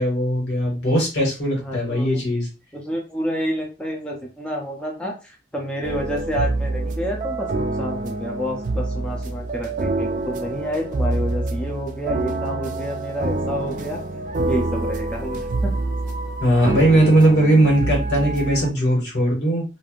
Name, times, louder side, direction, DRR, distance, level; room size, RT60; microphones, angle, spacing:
voice 1, 0.0-2.5 16.4-19.6, right 1 dB, 75° left, -2 dB, 1.6 m, -19 dB
voice 2, 1.6-2.1 2.7-14.0 14.5-15.7 16.7-16.8, equal, 5° left, -2 dB, 0.5 m, -29 dB
sound 1, 5.8-18.7, right 2 dB, 45° right, 0.3 m, -26 dB
3.3 x 2.5 x 2.4 m, 0.31 s
head